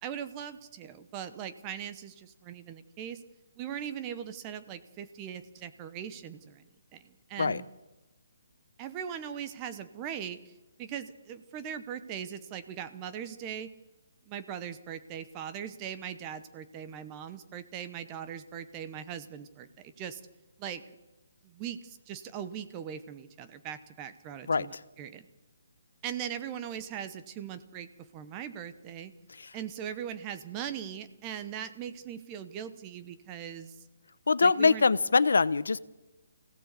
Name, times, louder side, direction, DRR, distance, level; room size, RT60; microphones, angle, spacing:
voice 1, 0.0-3.2 3.6-6.6 6.9-7.7 8.8-13.7 14.3-20.2 20.6-20.8 21.4-25.3 26.0-27.9 28.1-29.1 29.5-33.7 34.4-34.9, right 9 dB, 15° right, 11 dB, 0.9 m, -40 dB
voice 2, 34.3-35.8, left 4 dB, 75° left, 16 dB, 1.0 m, -23 dB
25.0 x 17.0 x 8.2 m, 1.1 s
hypercardioid pair, 180°, 0 cm